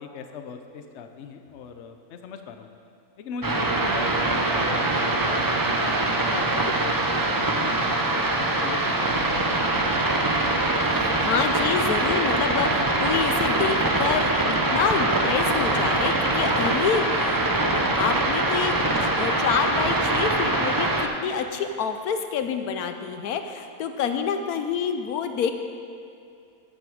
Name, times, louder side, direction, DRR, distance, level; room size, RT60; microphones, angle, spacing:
voice 1, 0.0-2.7 3.2-4.8 5.2-9.7, left 6 dB, 55° left, 6 dB, 0.9 m, -38 dB
sound 1, 3.4-21.1, right 2 dB, 35° right, 0.3 m, -23 dB
voice 2, 10.9-25.5, left 7 dB, 75° left, 8 dB, 1.1 m, -28 dB
13.0 x 7.9 x 5.0 m, 2.4 s
omnidirectional pair, 1.6 m